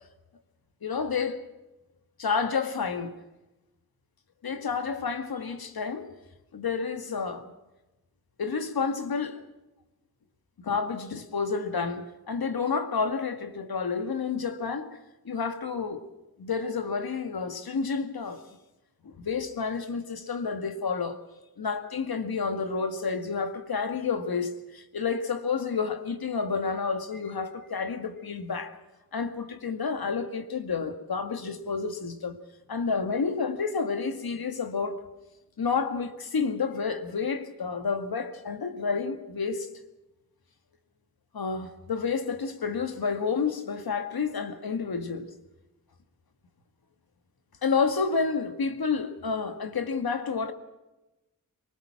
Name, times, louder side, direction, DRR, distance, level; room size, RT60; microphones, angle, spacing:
voice 1, 0.8-1.4 2.2-3.1 4.4-6.1 6.5-7.5 8.4-9.4 10.6-14.9 15.3-16.0 16.4-18.4 19.0-21.2 21.6-28.7 29.1-32.4 32.7-35.0 35.6-39.7 41.3-45.3 47.6-50.5, left 5 dB, 90° left, 2.0 m, -30 dB
26.0 x 19.5 x 6.0 m
wide cardioid pair, 85°, 35 cm